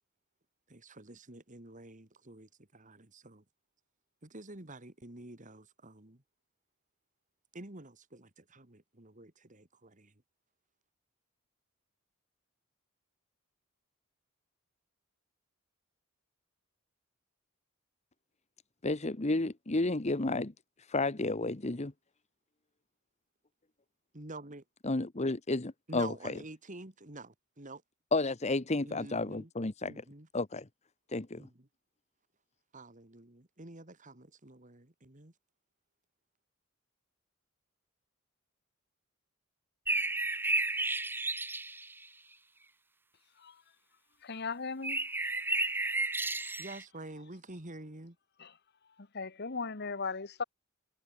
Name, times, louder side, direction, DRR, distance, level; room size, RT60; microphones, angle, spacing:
voice 1, 0.7-3.4 4.2-6.2 7.5-10.2 24.1-24.6 25.9-27.8 28.8-29.5 29.8-30.3 31.4-31.5 32.7-35.3 46.6-48.2, right 2 dB, 35° right, 2.4 m, -48 dB
voice 2, 18.8-21.9 24.8-26.4 28.1-30.0 30.3-30.7 31.1-31.5, left 2 dB, 30° left, 1.0 m, -32 dB
sound 1, 39.9-42.1 44.8-46.8, right 2 dB, 10° right, 1.5 m, -32 dB
voice 3, 44.2-45.0 48.4-48.5 49.1-50.4, left 4 dB, 50° left, 1.3 m, -37 dB
head